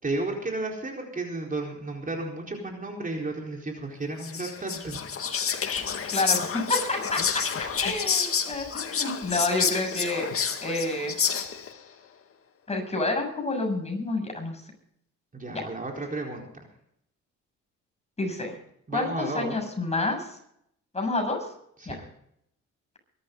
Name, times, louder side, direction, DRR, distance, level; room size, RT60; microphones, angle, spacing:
voice 1, 0.0-5.0 15.3-16.5 18.9-19.6 21.8-22.0, right 2 dB, 25° right, 0 dB, 4.3 m, -33 dB
Whispering, 4.2-11.8, left 7 dB, 50° left, 2.0 m, -29 dB
voice 2, 6.1-10.3 10.6-11.1 12.7-14.6 15.5-15.7 18.2-18.6 18.9-20.3 20.9-21.4 21.9-22.0, left 2 dB, 20° left, 3 dB, 7.4 m, -29 dB
23.5 x 12.5 x 3.9 m, 0.72 s
cardioid pair, 90°, 30 cm